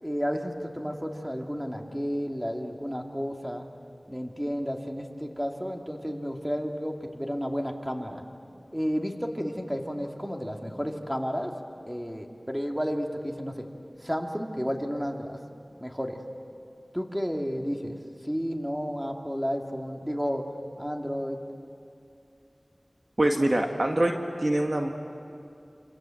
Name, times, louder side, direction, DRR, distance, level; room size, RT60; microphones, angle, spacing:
voice 1, 0.0-3.7 4.1-8.2 8.7-11.5 11.9-13.6 14.0-15.4 15.8-16.2 16.9-18.0 18.2-20.4 20.8-21.4, equal, 5° right, 2 dB, 2.6 m, -32 dB
voice 2, 23.2-24.9, right 1 dB, 45° right, 3 dB, 1.9 m, -24 dB
27.5 x 27.5 x 7.9 m, 2.6 s
wide cardioid pair, 45°, 0 cm